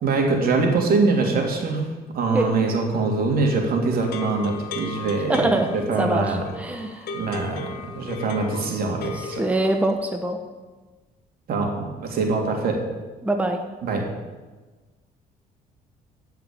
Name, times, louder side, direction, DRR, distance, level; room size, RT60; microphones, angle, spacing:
voice 1, 0.0-1.9 2.1-5.5 5.7-6.4 7.1-9.4 11.5-12.8 13.8-14.0, right 3 dB, 60° right, 1 dB, 3.1 m, -23 dB
sound 1, 4.0-9.9, left 3 dB, 65° left, 1.8 m, -36 dB
voice 2, 5.3-5.7 6.0-7.1 9.1-10.4 13.2-13.6, right 2 dB, 10° right, 4 dB, 1.0 m, -24 dB
15.0 x 5.8 x 8.8 m, 1.3 s
cardioid pair, 110°, 17 cm